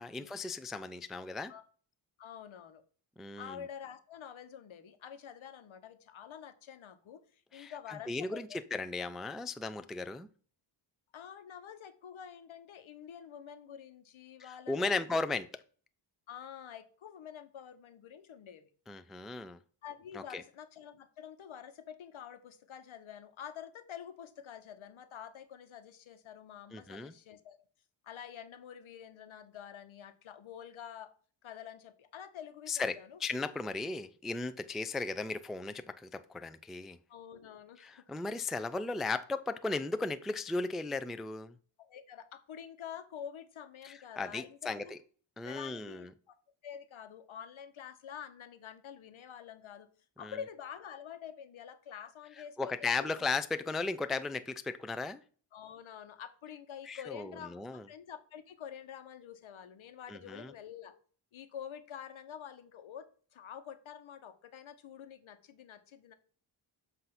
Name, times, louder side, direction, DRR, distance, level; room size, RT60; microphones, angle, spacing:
voice 1, 0.0-1.5 3.2-3.6 7.5-10.3 14.4-15.6 18.9-19.6 20.1-20.4 26.7-27.1 32.7-37.0 37.8-41.5 43.8-45.0 45.4-46.1 50.2-50.3 52.6-55.2 56.9-57.9 60.1-60.5, left 3 dB, ahead, 0.3 m, -36 dB
voice 2, 2.2-2.8 3.4-8.6 11.1-15.1 16.3-18.7 19.8-27.6 28.0-31.1 31.4-33.2 37.1-38.2 41.8-44.9 45.4-46.3 46.6-49.9 50.2-53.1 55.5-60.9 61.3-63.1 63.3-66.1, left 8 dB, 70° left, 1.1 m, -48 dB
7.6 x 2.8 x 5.9 m
cardioid pair, 60°, 50 cm